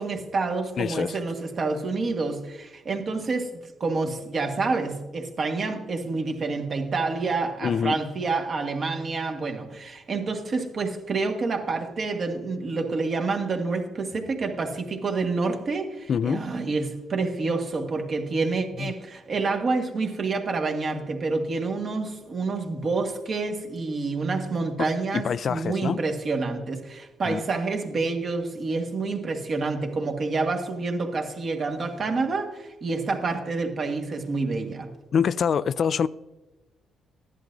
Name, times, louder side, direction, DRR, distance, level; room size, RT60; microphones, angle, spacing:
voice 1, 0.0-34.9, right 3 dB, 45° right, 1.5 m, -28 dB
voice 2, 0.8-1.2 7.6-8.0 16.1-16.5 18.8-18.9 25.1-26.0 27.2-27.4 35.1-36.1, left 7 dB, 55° left, 0.3 m, -25 dB
14.5 x 11.0 x 2.6 m
cardioid pair, 90°, 0 cm